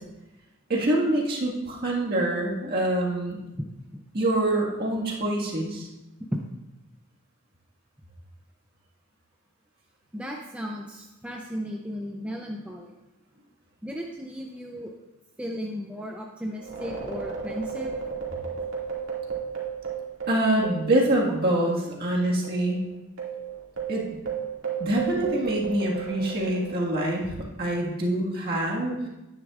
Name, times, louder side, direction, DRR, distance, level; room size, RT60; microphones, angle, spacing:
voice 1, 0.7-3.4 4.1-5.9 20.3-22.8 23.9-24.1 24.8-27.3 27.6-29.0, right 1 dB, 45° right, -3 dB, 1.7 m, -25 dB
voice 2, 3.5-4.0 6.3-6.4 10.1-12.9 13.8-14.9 15.4-18.0, equal, 5° right, 0 dB, 0.5 m, -35 dB
sound 1, 16.6-21.4 21.7-21.8 22.4-27.2, right 6 dB, 60° right, 2.2 m, -34 dB
10.5 x 9.5 x 2.4 m, 0.99 s
head